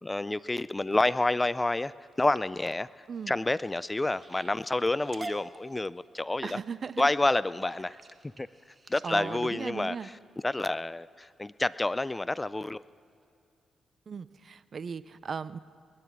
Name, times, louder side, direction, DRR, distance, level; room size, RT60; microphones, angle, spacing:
voice 1, 0.0-6.6 7.0-8.0 8.4-8.5 8.9-10.2 10.4-12.8, left 2 dB, 20° left, 18 dB, 0.4 m, -29 dB
sound 1, 1.9-10.6 11.2-11.6 12.0-12.4 12.8-12.9 13.2-13.3, right 2 dB, 35° right, 1.1 m, -49 dB
voice 2, 6.4-7.0 9.0-10.1 14.1-15.6, right 6 dB, 55° right, 17 dB, 0.5 m, -37 dB
20.5 x 11.5 x 6.1 m, 2.5 s
supercardioid pair, 60°, 0 cm